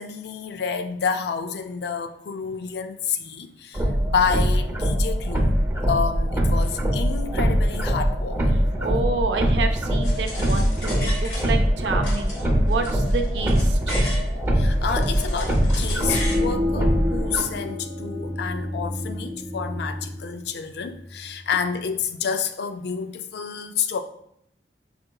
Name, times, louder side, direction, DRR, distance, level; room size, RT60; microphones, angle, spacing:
voice 1, 0.0-8.5 14.5-24.0, left 6 dB, 65° left, 0.4 m, -29 dB
sound 1, 3.7-17.4, equal, 15° right, 0.7 m, -22 dB
voice 2, 8.8-14.0, right 4 dB, 80° right, 0.5 m, -29 dB
sound 2, 10.0-11.7 12.0-14.3 14.7-16.4, left 1 dB, 90° left, 1.4 m, -36 dB
sound 3, 16.0-21.4, left 1 dB, 50° right, 0.8 m, -30 dB
5.0 x 3.7 x 2.3 m
head